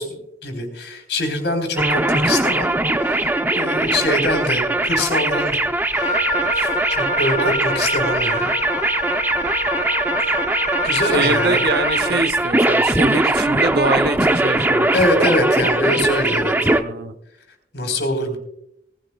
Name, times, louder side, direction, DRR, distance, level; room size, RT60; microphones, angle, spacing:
voice 1, 0.0-2.7 3.0-6.2 6.5-8.6 10.8-11.6 12.0-12.1 14.9-16.7 17.7-18.4, left 1 dB, 70° left, 4 dB, 3.8 m, -24 dB
sound 1, 1.8-16.8, right 2 dB, 10° right, 0.6 m, -20 dB
Wind instrument woodwind instrument, 6.0-12.2, left 1 dB, 20° left, 1.8 m, -27 dB
voice 2, 11.0-15.3 16.6-17.2, right 3 dB, 60° right, 11 dB, 0.8 m, -24 dB
19.0 x 15.5 x 2.3 m, 0.78 s
head